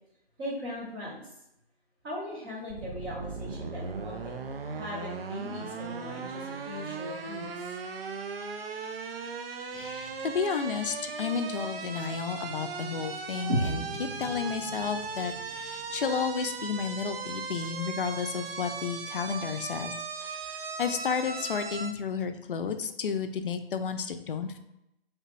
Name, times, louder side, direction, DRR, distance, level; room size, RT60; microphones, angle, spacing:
voice 1, 0.4-1.3 2.0-4.3 4.7-7.5, left 1 dB, 10° right, -7 dB, 0.5 m, -39 dB
sound 1, 2.7-21.9, right 5 dB, 65° right, 0.5 m, -38 dB
voice 2, 9.7-19.9 20.2-24.6, left 6 dB, 60° left, 8 dB, 0.4 m, -32 dB
sound 2, 13.5-17.5, right 1 dB, 90° right, 1.1 m, -36 dB
3.4 x 2.8 x 2.8 m, 0.83 s
figure-of-eight pair, 145°, 31 cm